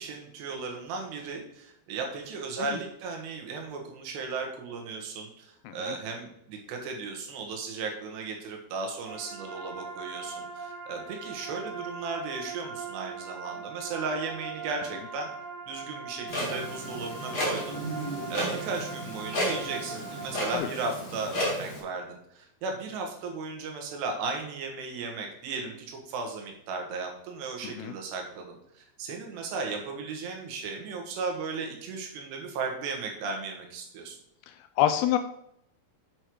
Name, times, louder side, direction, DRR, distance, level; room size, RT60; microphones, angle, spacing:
voice 1, 0.0-15.3 15.7-17.8 18.3-34.2, right 4 dB, 90° right, 2 dB, 3.6 m, -36 dB
voice 2, 5.7-6.0 20.5-20.7 27.6-27.9 34.5-35.2, left 12 dB, 85° left, 8 dB, 2.2 m, -28 dB
sound 1, 9.1-20.6, right 4 dB, 70° right, 2.5 m, -41 dB
Clock, 16.3-21.8, equal, 35° left, 1.7 m, -33 dB
7.7 x 6.4 x 4.6 m, 0.75 s
omnidirectional pair, 4.7 m